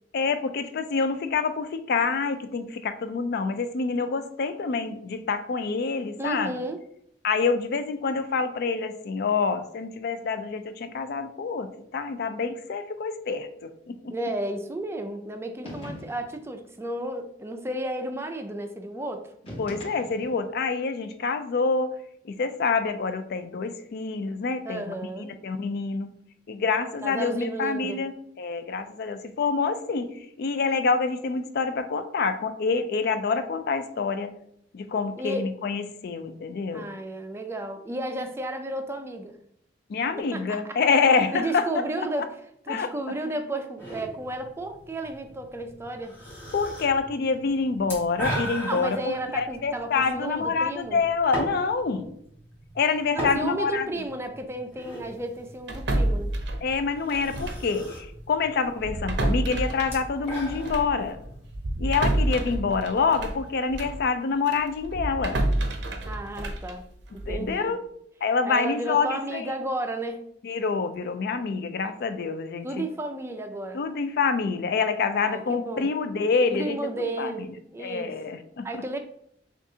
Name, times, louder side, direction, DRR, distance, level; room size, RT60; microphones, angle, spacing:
voice 1, 0.1-6.5 7.2-14.1 19.6-21.9 22.2-26.1 26.5-30.1 30.4-34.3 34.7-36.9 39.9-41.7 42.7-42.9 46.5-52.1 52.8-53.9 56.6-61.2 61.8-65.4 67.3-67.8 68.2-69.5 70.4-72.9 73.7-76.9 77.2-77.5 77.8-78.8, left 4 dB, 60° left, 10 dB, 0.4 m, -27 dB
voice 2, 6.2-6.8 14.1-19.3 24.6-25.3 27.0-28.1 35.2-35.5 36.7-39.3 40.2-40.8 41.3-42.3 42.7-46.2 48.7-51.0 53.1-56.3 66.1-66.9 67.3-67.8 68.4-70.2 72.6-73.8 75.2-75.9 76.5-78.2 78.6-79.0, right 1 dB, 15° right, 6 dB, 0.4 m, -33 dB
sound 1, 15.6-16.4 19.4-20.5, equal, 30° left, 1.5 m, -40 dB
sound 2, 43.8-63.5, equal, 15° left, 1.5 m, -39 dB
sound 3, 55.7-57.7 58.0-58.2 58.8-64.0 64.5-67.5, right 1 dB, 70° right, 0.6 m, -29 dB
6.1 x 2.4 x 2.7 m, 0.72 s
head